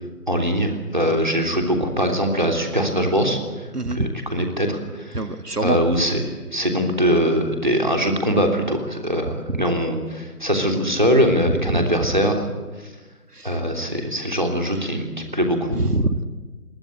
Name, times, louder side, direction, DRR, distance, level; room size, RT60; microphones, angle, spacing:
voice 1, 0.3-5.3 5.6-12.5 13.4-15.8, equal, 30° right, 3 dB, 3.2 m, -22 dB
voice 2, 3.7-4.1 5.1-5.8 9.5-9.6 11.5-11.9 13.3-13.6 15.7-16.3, right 2 dB, 80° right, 9 dB, 2.0 m, -24 dB
27.5 x 22.5 x 8.7 m, 1.3 s
figure-of-eight pair, 175°, 46 cm